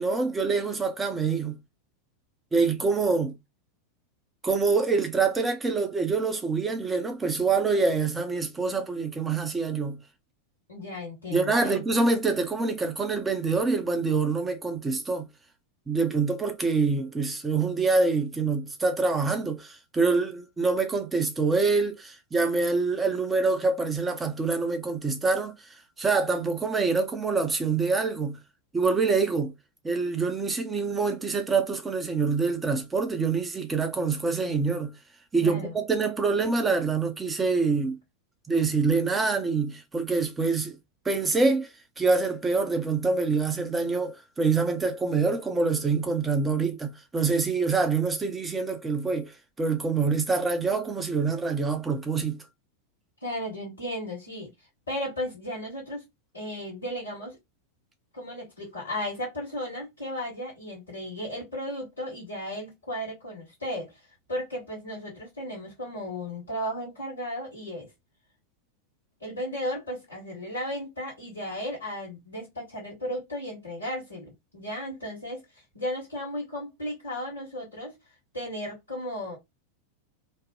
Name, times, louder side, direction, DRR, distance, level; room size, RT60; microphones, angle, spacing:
voice 1, 0.0-1.6 2.5-3.3 4.4-10.0 11.3-15.2 15.9-25.5 26.0-28.4 28.7-29.5 29.8-34.9 35.3-38.0 38.5-40.8 41.0-41.7 42.0-52.4, right 4 dB, 15° right, 0.7 m, -25 dB
voice 2, 10.7-11.9 35.4-35.7 53.2-54.5 54.9-56.0 56.3-57.4 58.1-64.0 64.3-67.9 69.2-75.4 75.7-77.9 78.3-79.4, equal, 70° left, 1.3 m, -35 dB
3.2 x 2.1 x 2.7 m
figure-of-eight pair, 90°, 0 cm